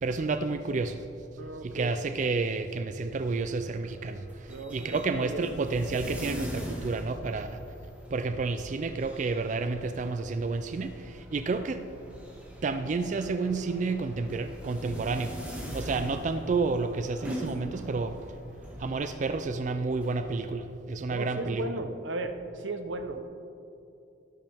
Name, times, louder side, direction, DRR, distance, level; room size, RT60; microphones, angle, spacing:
voice 1, 0.0-1.0 1.6-4.2 4.7-7.6 8.1-11.9 12.6-15.3 15.7-18.2 18.8-21.7, right 3 dB, 40° right, 9 dB, 0.3 m, -30 dB
voice 2, 1.4-1.9 4.5-5.4 21.1-23.2, right 2 dB, 75° right, 7 dB, 0.8 m, -36 dB
sound 1, 3.4-20.1, equal, 5° right, 1.6 m, -42 dB
13.0 x 11.0 x 3.5 m, 2.8 s
head